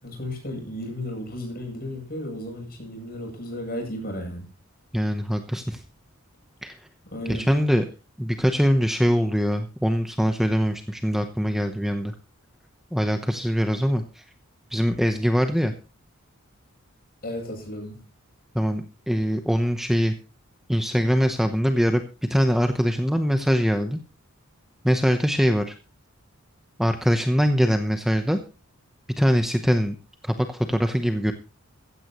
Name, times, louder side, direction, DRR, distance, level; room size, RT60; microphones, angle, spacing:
voice 1, 0.0-4.5 7.1-7.5 17.2-18.0, left 1 dB, 45° left, 1 dB, 8.0 m, -34 dB
voice 2, 4.9-5.8 6.6-6.7 7.3-7.8 8.2-12.1 12.9-14.2 14.7-15.7 18.5-20.1 20.7-22.0 22.3-24.0 24.8-25.7 26.8-28.4 29.2-30.0 30.2-31.3, equal, ahead, 6 dB, 0.9 m, -22 dB
15.5 x 15.0 x 3.1 m, 0.32 s
head